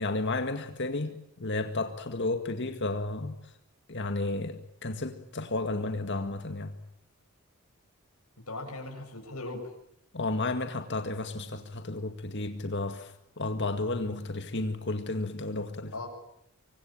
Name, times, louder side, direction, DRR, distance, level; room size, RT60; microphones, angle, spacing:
voice 1, 0.0-3.4 3.9-6.7 10.1-15.9, left 2 dB, 55° left, 2.0 m, -32 dB
voice 2, 8.5-9.7 15.9-16.1, left 2 dB, 85° left, 7.6 m, -38 dB
25.5 x 25.0 x 8.9 m
head